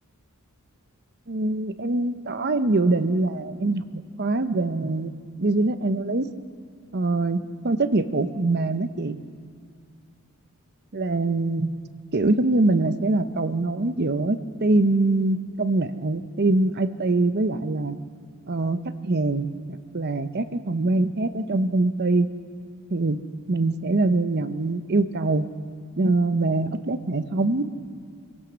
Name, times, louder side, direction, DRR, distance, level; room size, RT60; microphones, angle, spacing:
voice 1, 1.3-5.1 5.4-6.3 6.9-9.2 10.9-11.7 12.1-18.0 18.5-22.3 22.9-23.2 23.5-25.4 26.0-27.6, right 2 dB, 50° right, 11 dB, 0.8 m, -23 dB
25.5 x 16.5 x 6.3 m, 2.2 s
head